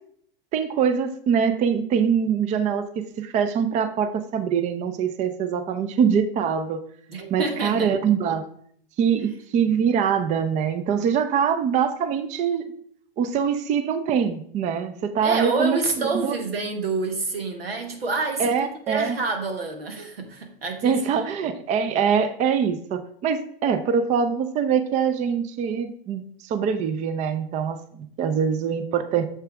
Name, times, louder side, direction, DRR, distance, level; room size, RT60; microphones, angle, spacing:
voice 1, 0.5-2.9 3.2-6.8 7.3-8.4 9.0-12.6 13.2-15.8 16.2-16.4 18.4-19.2 20.8-29.3, right 7 dB, 25° right, 11 dB, 0.5 m, -23 dB
voice 2, 7.1-7.9 15.2-18.6 18.9-21.3, right 3 dB, 90° right, 5 dB, 1.4 m, -28 dB
6.9 x 5.6 x 3.4 m, 0.63 s
hypercardioid pair, 105°, 29 cm